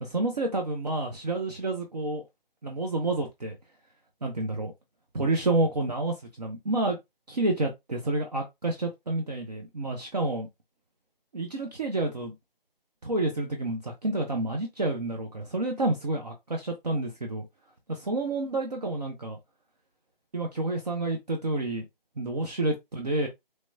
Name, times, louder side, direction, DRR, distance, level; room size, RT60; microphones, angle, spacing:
voice 1, 0.0-2.2 2.6-3.6 4.2-4.7 5.1-7.0 7.3-10.5 11.3-12.3 13.0-17.4 17.9-19.4 20.3-21.8 22.2-23.3, right 2 dB, 45° right, 0.6 m, -29 dB
3.2 x 2.8 x 2.2 m
figure-of-eight pair, 155°, 29 cm